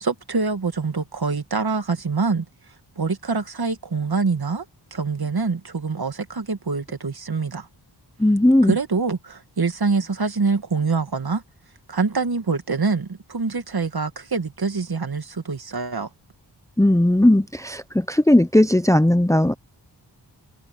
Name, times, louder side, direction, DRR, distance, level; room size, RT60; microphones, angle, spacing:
voice 1, 0.0-2.4 3.0-4.6 4.9-7.7 8.6-11.4 11.9-16.1, right 4 dB, 55° right, 2.5 m, -25 dB
voice 2, 8.2-8.8 16.8-19.5, left 1 dB, 5° left, 0.8 m, -17 dB
cardioid pair, 55°, 44 cm